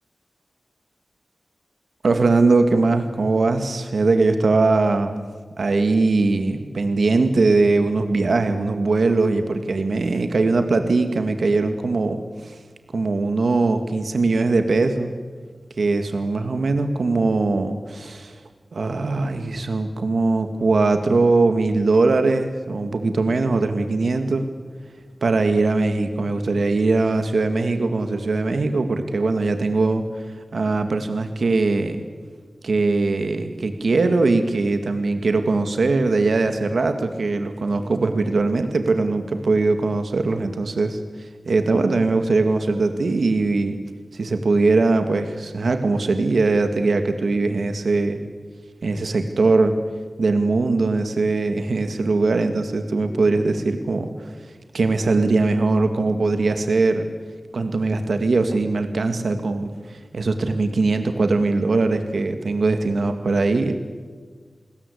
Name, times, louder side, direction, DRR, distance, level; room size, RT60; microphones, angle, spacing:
voice 1, 2.0-5.2 5.6-12.6 12.9-15.1 15.8-18.4 18.7-24.5 25.2-30.3 30.5-32.0 32.6-43.8 44.1-48.2 48.8-49.8 50.2-54.5 54.7-57.1 57.5-63.8, right 3 dB, 80° right, 7 dB, 2.0 m, -21 dB
29.0 x 20.5 x 8.6 m, 1.5 s
wide cardioid pair, 85°, 0 cm